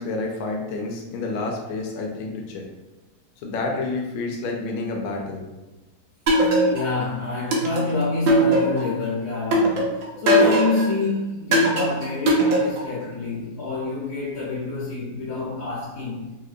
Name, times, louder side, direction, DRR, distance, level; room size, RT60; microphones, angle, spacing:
voice 1, 0.0-2.6 3.4-5.4, left 3 dB, 90° left, 1.4 m, -29 dB
sound 1, 6.3-7.0 7.5-9.0 9.5-10.9 11.5-13.0, equal, 90° right, 0.7 m, -19 dB
voice 2, 6.7-16.4, left 3 dB, 60° left, 1.1 m, -27 dB
3.2 x 2.7 x 2.4 m
omnidirectional pair, 2.2 m